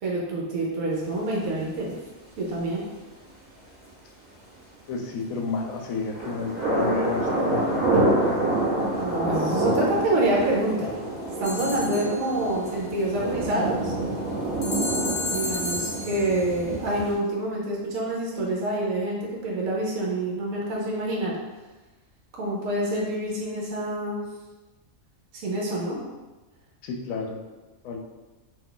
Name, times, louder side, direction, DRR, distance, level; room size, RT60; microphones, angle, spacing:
voice 1, 0.0-1.9 2.4-2.9 8.9-10.9 11.4-13.9 15.2-21.4 22.4-24.2 25.3-26.0, right 1 dB, 75° right, -3 dB, 1.1 m, -27 dB
voice 2, 4.9-8.3 11.5-11.6 11.8-11.9 26.8-27.4 27.8-28.0, left 4 dB, 80° left, 1 dB, 1.0 m, -31 dB
sound 1, 6.1-17.2, right 1 dB, 40° right, 1.2 m, -27 dB
sound 2, 11.4-12.5 14.6-16.4, left 2 dB, 50° left, 0.7 m, -32 dB
2.7 x 2.3 x 3.7 m, 1.2 s
omnidirectional pair, 1.4 m